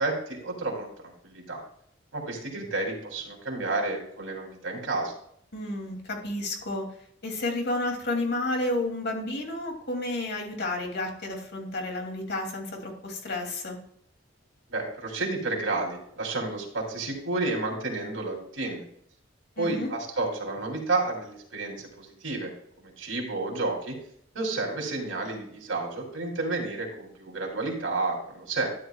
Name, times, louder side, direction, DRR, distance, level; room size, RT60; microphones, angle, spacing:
voice 1, 0.0-1.6 2.1-5.1 14.7-18.8 19.6-22.5 22.8-23.9 24.3-28.7, right 2 dB, 75° right, 1 dB, 3.2 m, -31 dB
voice 2, 5.5-6.9 7.2-13.8 19.6-19.9, left 2 dB, 60° left, 1 dB, 2.8 m, -31 dB
12.5 x 10.5 x 2.4 m, 0.67 s
head